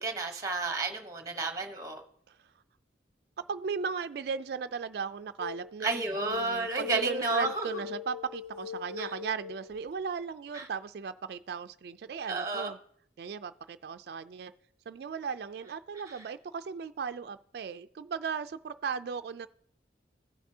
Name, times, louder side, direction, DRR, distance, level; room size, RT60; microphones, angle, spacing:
voice 1, 0.0-2.0 5.8-7.8 9.0-9.1 10.5-10.7 12.3-12.7 16.0-16.3, right 3 dB, 15° right, 0.9 m, -32 dB
voice 2, 3.4-12.8 13.2-14.5 14.9-19.5, right 6 dB, 55° right, 0.3 m, -37 dB
sound 1, 5.4-5.7 6.1-9.9, left 7 dB, 80° left, 0.5 m, -41 dB
16.5 x 5.9 x 2.7 m
head